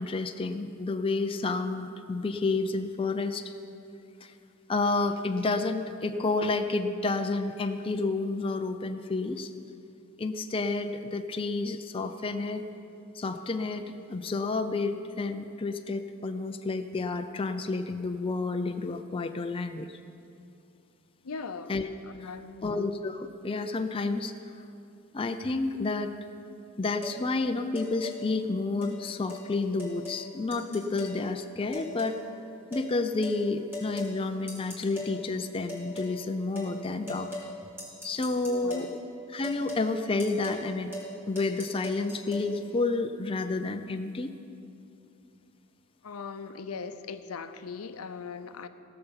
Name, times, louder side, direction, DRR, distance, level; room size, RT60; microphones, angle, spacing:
voice 1, 0.0-3.5 4.2-4.3 4.7-9.5 10.2-12.6 13.1-19.9 21.7-21.9 22.2-22.3 22.6-24.3 25.1-26.2 26.8-32.2 32.7-37.3 38.0-38.9 39.3-40.9 41.3-44.3, left 3 dB, 25° left, 7 dB, 0.4 m, -30 dB
voice 2, 21.2-21.7 22.1-22.8 38.5-39.0 46.0-48.7, left 5 dB, 75° left, 10 dB, 0.6 m, -39 dB
sound 1, 27.0-27.2 27.8-28.2 28.8-29.0 29.3-29.4 29.8-30.2 30.5-31.2 31.7-32.2 32.7-32.9 33.2-33.4 33.7-34.1 34.5-35.1 35.7-36.1 36.6-36.7 37.1-37.5 37.8-38.9 39.4-39.9 40.2-40.6 40.9-41.1 41.4-42.5, left 1 dB, 10° right, 3.1 m, -39 dB
16.5 x 6.9 x 7.2 m, 2.6 s
head